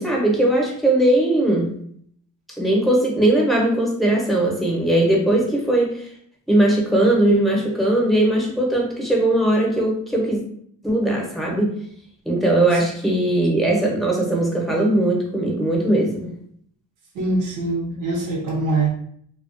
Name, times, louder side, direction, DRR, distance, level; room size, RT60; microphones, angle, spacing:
voice 1, 0.0-1.7 2.6-6.1 6.5-10.4 10.8-11.7 12.2-16.4, right 1 dB, ahead, -1 dB, 0.7 m, -19 dB
voice 2, 17.1-18.9, right 2 dB, 90° right, -4 dB, 0.8 m, -23 dB
2.3 x 2.2 x 2.5 m, 0.64 s
cardioid pair, 90°, 30 cm